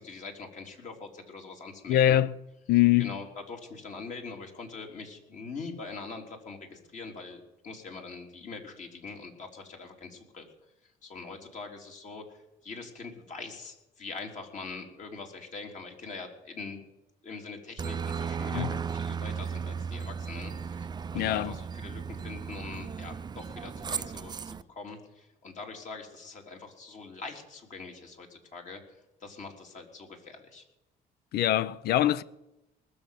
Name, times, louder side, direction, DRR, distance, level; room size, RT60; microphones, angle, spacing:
voice 1, 0.0-2.2 3.0-10.5 11.0-16.8 17.2-28.8 29.2-30.6, left 4 dB, 45° left, 3.6 m, -43 dB
voice 2, 1.9-2.3 2.7-3.2 18.5-18.7 21.1-21.5 31.3-32.2, left 13 dB, 70° left, 0.7 m, -23 dB
Aircraft, 17.8-24.6, right 6 dB, 25° right, 0.5 m, -35 dB
20.0 x 7.0 x 9.4 m
cardioid pair, 110°, 17 cm